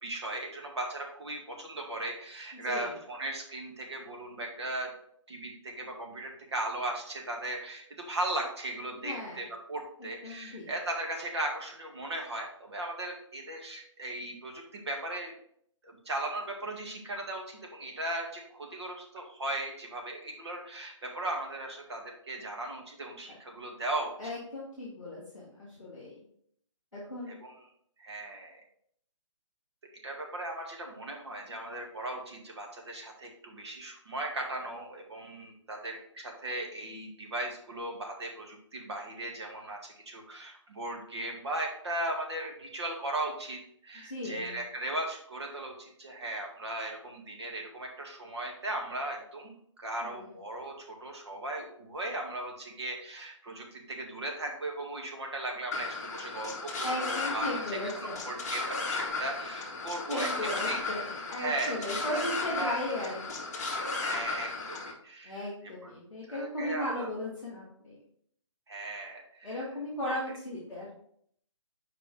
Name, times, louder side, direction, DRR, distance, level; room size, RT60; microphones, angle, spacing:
voice 1, 0.0-4.9 5.3-15.3 15.8-24.1 27.3-27.5 28.0-28.6 30.0-60.3 60.7-60.8 61.4-62.2 62.6-62.8 63.9-65.4 65.8-65.9 66.3-67.1 68.7-69.6 70.1-70.2, right 2 dB, 55° right, 1 dB, 1.9 m, -37 dB
voice 2, 2.5-2.9 8.9-9.4 10.0-10.7 24.2-26.2 26.9-27.4 44.0-44.6 50.0-50.3 56.8-58.3 60.1-63.4 65.2-68.0 69.4-71.0, left 1 dB, ahead, -17 dB, 0.4 m, -37 dB
sound 1, 55.7-64.9, left 3 dB, 30° left, 1.1 m, -35 dB
7.5 x 4.8 x 3.3 m, 0.66 s
hypercardioid pair, 175°, 16 cm